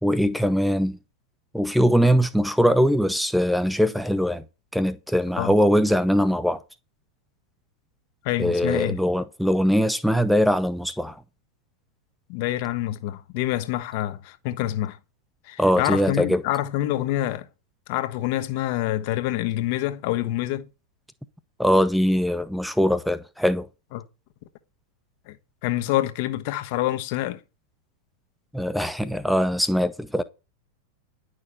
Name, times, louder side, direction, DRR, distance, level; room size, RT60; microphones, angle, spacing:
voice 1, 0.0-1.0 1.5-4.4 4.7-6.6 8.4-11.2 15.6-16.4 21.6-23.7 28.5-30.2, equal, ahead, 0.9 m, -21 dB
voice 2, 8.2-9.0 12.3-15.0 15.5-17.5 17.9-20.7 23.9-24.0 25.3-25.4 25.6-27.4, left 14 dB, 45° left, 1.3 m, -26 dB
11.0 x 6.6 x 7.7 m
figure-of-eight pair, 90°, 0 cm